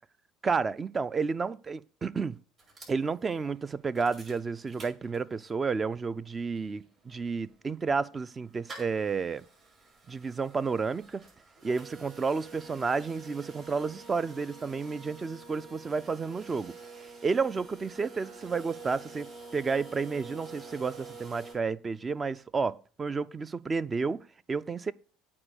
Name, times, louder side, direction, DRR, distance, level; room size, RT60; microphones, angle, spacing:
voice 1, 0.4-2.3 2.9-9.4 10.1-11.2 11.6-16.7 17.2-19.3 19.5-24.9, right 4 dB, 30° right, 0.5 m, -31 dB
sound 1, 2.6-5.6 6.0-6.1 6.2-21.5, right 3 dB, 50° right, 5.8 m, -48 dB
8.6 x 4.7 x 6.6 m
hypercardioid pair, 75°, 0 cm